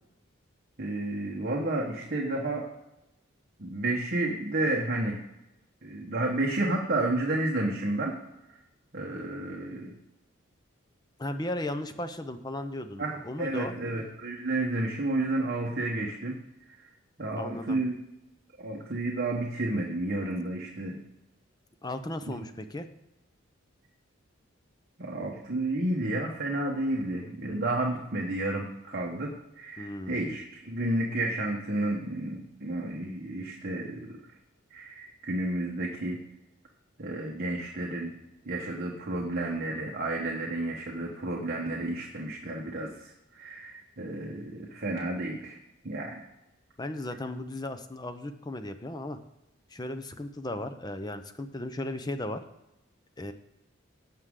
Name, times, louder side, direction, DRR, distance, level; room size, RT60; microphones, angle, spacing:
voice 1, 0.8-2.6 3.6-5.2 5.8-8.1 8.9-9.9 13.0-16.4 17.2-18.0 18.6-21.0 22.3-22.4 25.0-34.1 34.7-36.2 37.0-38.2 38.5-45.6 45.8-46.2, right 2 dB, 45° right, -1 dB, 1.2 m, -31 dB
voice 2, 11.2-13.7 17.3-17.8 21.8-22.9 29.8-30.4 46.8-49.2 49.7-52.4 53.2-53.3, left 1 dB, 20° left, 9 dB, 0.6 m, -36 dB
16.5 x 6.2 x 3.8 m, 0.93 s
head